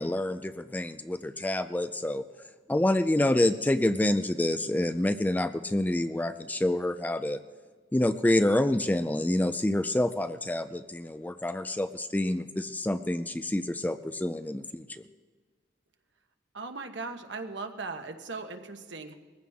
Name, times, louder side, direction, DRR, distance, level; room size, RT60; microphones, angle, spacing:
voice 1, 0.0-2.2 2.7-7.4 7.9-15.0, left 1 dB, 10° left, 10 dB, 0.4 m, -27 dB
voice 2, 16.5-19.1, right 3 dB, 70° right, 6 dB, 1.2 m, -38 dB
21.0 x 15.0 x 3.6 m, 1.4 s
head